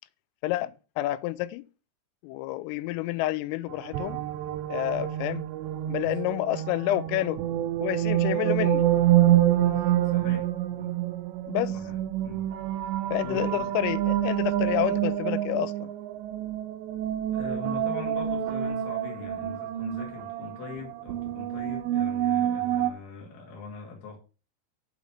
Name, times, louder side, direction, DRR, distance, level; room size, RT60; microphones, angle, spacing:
voice 1, 0.4-1.6 2.2-4.2 4.7-5.4 5.9-7.4 7.8-8.9 11.5-11.7 13.1-15.9, left 15 dB, 85° left, 3.2 m, -29 dB
sound 1, 3.7-22.9, right 12 dB, 80° right, 2.6 m, -27 dB
voice 2, 9.9-11.2 11.7-12.0 12.2-12.4 13.2-13.8 17.3-24.2, left 5 dB, 55° left, 3.7 m, -42 dB
7.6 x 7.1 x 5.5 m
omnidirectional pair, 5.8 m